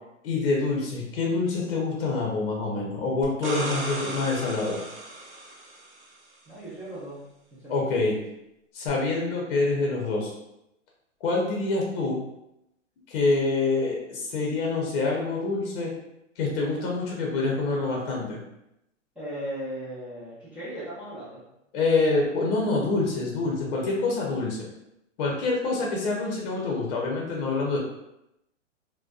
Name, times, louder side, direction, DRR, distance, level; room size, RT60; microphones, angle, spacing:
voice 1, 0.2-4.8 7.7-8.2 8.7-10.3 11.2-12.2 13.1-15.9 16.4-18.4 21.7-24.6 25.2-27.8, left 3 dB, 45° left, -2 dB, 0.7 m, -26 dB
sound 1, 3.2-6.0 8.9-9.0, right 2 dB, 60° right, 1.0 m, -35 dB
voice 2, 6.5-7.2 7.6-7.9 19.2-21.4, right 1 dB, 5° right, -13 dB, 0.5 m, -37 dB
2.5 x 2.2 x 2.3 m, 0.84 s
hypercardioid pair, 140°, 39 cm